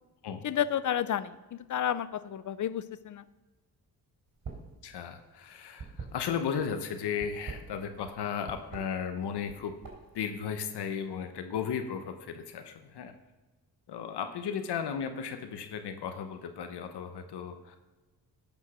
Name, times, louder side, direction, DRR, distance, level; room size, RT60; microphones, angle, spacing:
voice 1, 0.4-3.2, left 10 dB, 50° left, 15 dB, 0.6 m, -31 dB
sound 1, 4.3-4.8 5.0-6.6 7.1-8.2 8.5-8.8 9.4-10.2, right 5 dB, 55° right, 3.3 m, -43 dB
voice 2, 4.8-9.7 10.1-13.1 13.9-17.8, left 7 dB, 80° left, 7 dB, 0.9 m, -35 dB
12.0 x 5.4 x 6.1 m, 1.2 s
cardioid pair, 90°, 40 cm